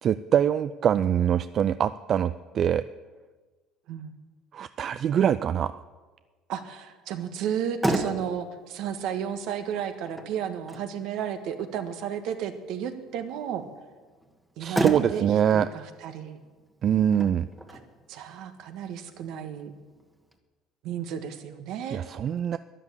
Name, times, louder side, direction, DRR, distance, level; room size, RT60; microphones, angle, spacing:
voice 1, 0.0-2.8 4.5-5.8 14.6-15.7 16.8-17.5 21.9-22.6, right 9 dB, 45° right, 14 dB, 0.4 m, -24 dB
voice 2, 6.5-13.6 14.6-16.4 17.7-17.8 18.1-19.7 20.8-22.0, right 8 dB, 70° right, 8 dB, 1.5 m, -33 dB
Motor vehicle (road), 7.4-20.4, right 1 dB, 10° right, 1.5 m, -36 dB
12.5 x 11.0 x 8.2 m, 1.4 s
cardioid pair, 115°, 0 cm